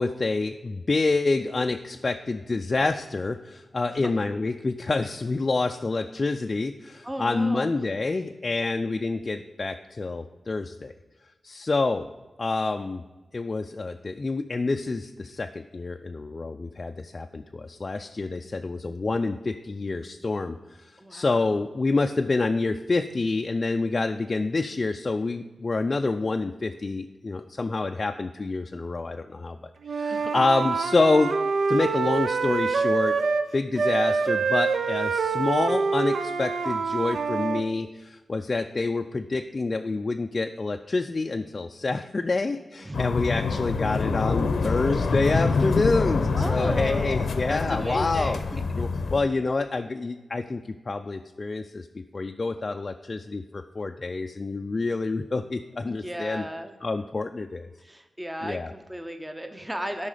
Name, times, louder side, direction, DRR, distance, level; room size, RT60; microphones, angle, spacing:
voice 1, 0.0-10.9 11.4-12.1 12.4-13.0 13.3-20.6 21.1-29.6 29.9-31.3 31.7-33.2 33.5-48.4 48.8-50.6 50.9-51.9 52.1-56.4 56.8-57.7 58.4-58.7, left 3 dB, 35° left, 5 dB, 0.4 m, -27 dB
voice 2, 7.0-7.7 21.0-21.4 30.1-30.3 42.8-43.0 46.3-48.6 55.9-56.8 57.8-60.1, equal, 10° right, 6 dB, 0.7 m, -35 dB
Wind instrument woodwind instrument, 29.8-33.5 33.8-37.6, right 4 dB, 70° right, 0.5 m, -25 dB
sound 1, 42.9-49.2, left 4 dB, 85° left, 0.7 m, -26 dB
12.5 x 5.5 x 5.0 m, 1.2 s
wide cardioid pair, 125°, 0 cm